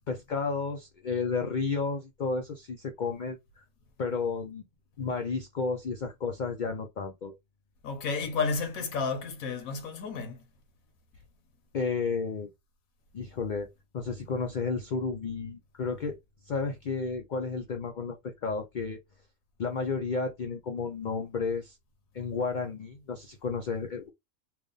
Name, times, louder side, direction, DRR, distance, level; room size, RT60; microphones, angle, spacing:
voice 1, 0.1-3.6 4.0-4.6 5.0-7.3 11.7-12.5 13.1-16.2 16.5-19.0 19.6-21.8 22.1-24.1, left 4 dB, 55° left, 0.5 m, -32 dB
voice 2, 7.8-10.4, left 4 dB, 85° left, 1.4 m, -31 dB
3.4 x 2.4 x 3.8 m
omnidirectional pair, 1.4 m